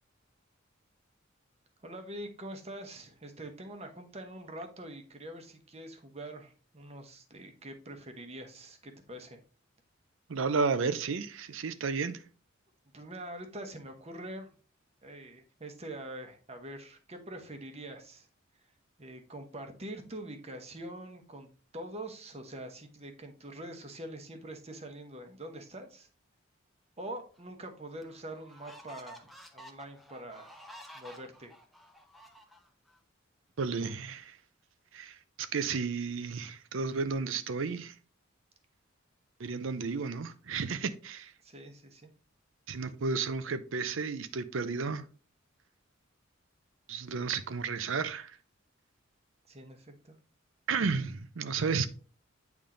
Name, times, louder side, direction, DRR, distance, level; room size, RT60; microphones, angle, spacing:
voice 1, 1.8-9.4 12.9-14.5 15.0-18.3 19.0-21.5 21.7-26.1 27.0-30.6 30.9-31.5 41.4-42.1 49.5-50.2, right 1 dB, 30° right, 1.1 m, -44 dB
voice 2, 10.3-12.2 33.6-34.4 34.9-37.9 39.4-41.3 42.7-45.1 46.9-48.4 50.7-51.9, right 5 dB, 70° right, 0.5 m, -32 dB
sound 1, 27.3-27.4 28.0-33.0, equal, ahead, 0.7 m, -52 dB
8.6 x 3.6 x 3.7 m
head